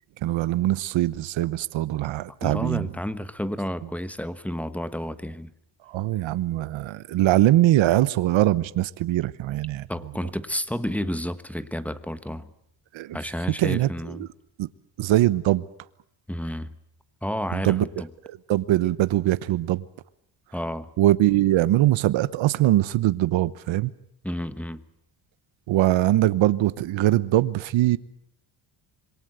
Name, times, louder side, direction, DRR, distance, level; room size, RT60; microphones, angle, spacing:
voice 1, 0.2-2.9 5.9-9.9 12.9-13.2 13.6-14.3 14.6-14.7 15.0-15.7 17.5-17.8 18.5-19.8 21.0-23.9 25.7-28.0, right 15 dB, 80° right, 1.0 m, -22 dB
voice 2, 2.4-5.5 9.9-12.5 13.1-14.3 16.3-16.7 17.2-18.1 20.5-20.9 24.2-24.8, equal, 5° left, 1.2 m, -31 dB
26.5 x 23.0 x 8.0 m
cardioid pair, 120°, 46 cm